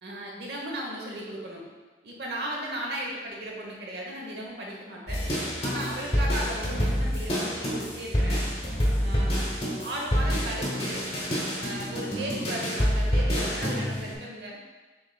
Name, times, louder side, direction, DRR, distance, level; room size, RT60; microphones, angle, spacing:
voice 1, 0.0-1.6 2.0-5.2 5.6-8.5 9.0-11.1 11.5-14.6, right 1 dB, 65° right, -2 dB, 0.9 m, -36 dB
sound 1, 5.1-14.1, equal, 35° left, 0.9 m, -27 dB
6.6 x 3.3 x 2.3 m, 1.3 s
head